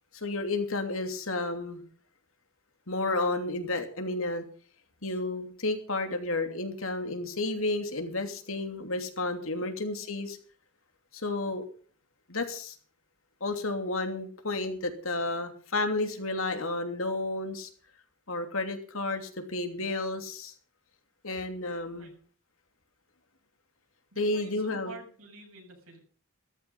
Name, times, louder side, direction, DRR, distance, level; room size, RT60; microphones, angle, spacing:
voice 1, 0.1-1.8 2.9-4.4 5.0-10.4 11.2-11.6 12.3-12.7 13.4-17.7 18.3-20.5 21.2-22.1 24.2-24.9, left 2 dB, 70° left, 6 dB, 2.9 m, -31 dB
voice 2, 24.1-26.0, right 3 dB, 70° right, 1 dB, 7.4 m, -49 dB
14.5 x 14.0 x 5.5 m, 0.43 s
head